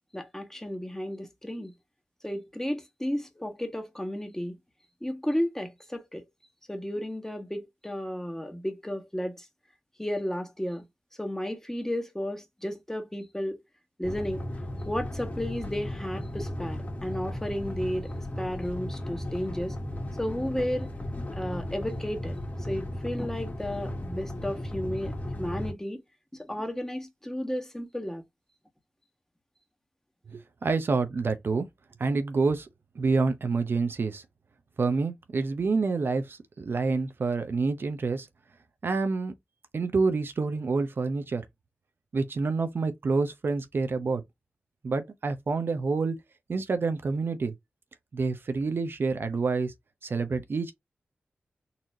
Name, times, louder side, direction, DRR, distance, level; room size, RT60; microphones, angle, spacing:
voice 1, 0.1-1.7 2.2-4.6 5.0-6.3 6.7-9.4 10.0-10.8 11.2-13.6 14.0-14.4 14.9-18.1 18.4-19.7 20.2-20.9 21.3-25.1 25.4-26.0 26.4-28.2, equal, 10° left, 1.5 m, -33 dB
sound 1, 14.0-25.7, left 1 dB, 40° left, 2.0 m, -35 dB
voice 2, 30.3-31.7 32.0-32.7 33.0-34.2 34.8-38.3 38.8-39.3 39.7-41.4 42.1-44.2 44.8-46.2 46.5-47.5 48.1-49.7 50.0-50.7, right 4 dB, 65° right, 0.7 m, -27 dB
4.1 x 2.8 x 2.7 m
cardioid pair, 45°, 4 cm